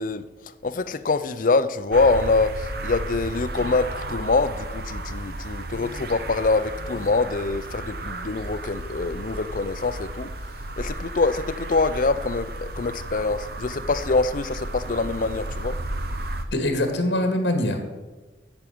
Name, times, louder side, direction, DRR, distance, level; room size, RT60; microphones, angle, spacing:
voice 1, 0.0-10.3 10.8-15.8, left 3 dB, 45° left, 0.5 m, -24 dB
sound 1, 1.9-16.5, right 1 dB, 55° right, 0.8 m, -33 dB
voice 2, 16.5-17.8, left 1 dB, 65° left, 2.0 m, -23 dB
8.7 x 7.2 x 8.5 m
head